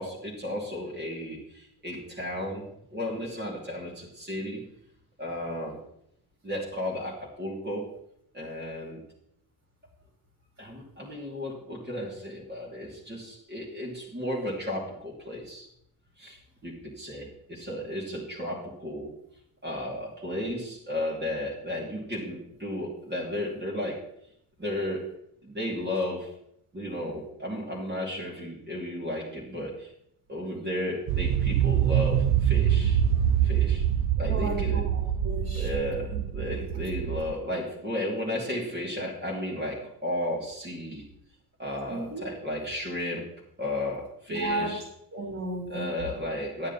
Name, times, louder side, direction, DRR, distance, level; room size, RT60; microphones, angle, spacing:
voice 1, 0.0-4.6 5.2-5.8 6.4-7.9 8.3-9.0 10.6-15.7 16.2-19.1 19.6-24.0 24.6-25.1 25.4-26.3 26.7-29.9 30.3-33.0 33.4-33.8 34.2-34.8 35.5-41.0 41.6-43.3 43.6-44.8 45.7-46.7, left 1 dB, 25° right, -4 dB, 2.8 m, -34 dB
sound 1, 31.1-37.3, right 10 dB, 90° right, 0.7 m, -25 dB
voice 2, 34.3-35.7 36.1-36.2 41.9-42.2 44.3-44.8 45.1-45.9, right 2 dB, 45° right, -1 dB, 3.4 m, -33 dB
9.6 x 9.3 x 4.2 m, 0.75 s
cardioid pair, 95°, 38 cm